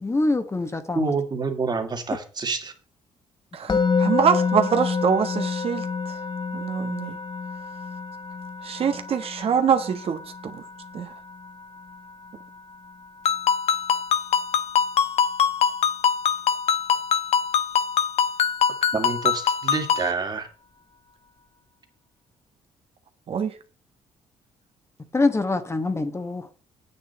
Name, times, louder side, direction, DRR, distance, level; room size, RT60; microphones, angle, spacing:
voice 1, 0.0-1.1 3.7-3.8 25.1-26.5, left 2 dB, 25° left, 9 dB, 1.4 m, -24 dB
voice 2, 0.9-2.7 18.9-20.5, right 4 dB, 40° right, 5 dB, 2.3 m, -27 dB
voice 3, 3.5-6.2 6.5-7.2 8.6-10.2 10.5-10.6 10.9-11.1 23.3-23.5, right 7 dB, 60° right, 7 dB, 1.3 m, -24 dB
Musical instrument, 3.7-14.8, left 5 dB, 40° left, 0.9 m, -30 dB
Ringtone, 13.3-20.1, left 8 dB, 70° left, 0.9 m, -23 dB
8.9 x 8.6 x 4.2 m, 0.38 s
supercardioid pair, 70°, 11 cm